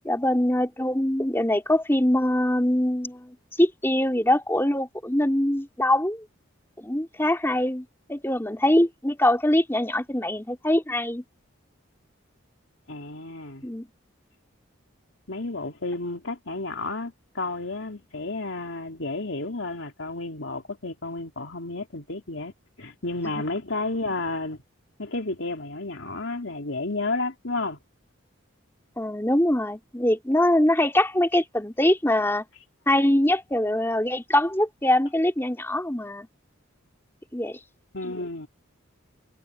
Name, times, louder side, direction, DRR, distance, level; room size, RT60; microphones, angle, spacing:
voice 1, 0.0-6.2 6.8-11.2 13.6-13.9 23.3-23.4 29.0-32.4 32.9-36.3 37.3-37.6, left 1 dB, 10° left, 3.1 m, -23 dB
voice 2, 12.9-13.7 15.3-22.5 22.8-24.6 25.0-27.8 37.9-38.5, left 2 dB, 70° left, 3.0 m, -31 dB
head